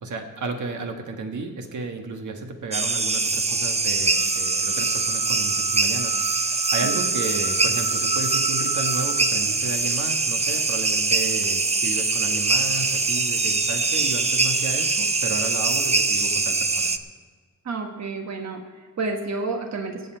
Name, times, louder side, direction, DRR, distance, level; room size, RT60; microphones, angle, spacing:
voice 1, 0.0-16.9, right 3 dB, 80° right, 3 dB, 1.5 m, -33 dB
sound 1, 2.7-17.0, right 3 dB, 20° right, 0.6 m, -23 dB
voice 2, 17.6-18.6 19.0-20.0, right 3 dB, 65° right, 3 dB, 1.4 m, -29 dB
24.5 x 8.3 x 4.4 m, 1.5 s
wide cardioid pair, 180°, 30 cm